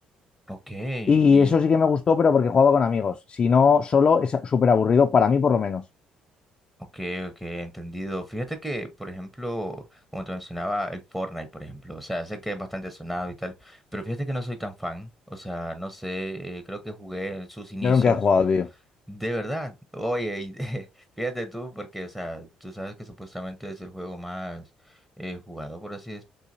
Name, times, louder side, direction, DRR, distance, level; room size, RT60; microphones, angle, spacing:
voice 1, 0.5-1.6 6.9-18.2 19.1-20.9 21.2-26.2, equal, 5° right, 0.8 m, -33 dB
voice 2, 1.1-5.8 17.8-18.7, left 5 dB, 40° left, 0.4 m, -19 dB
3.9 x 2.7 x 2.7 m
supercardioid pair, 65°, 3 cm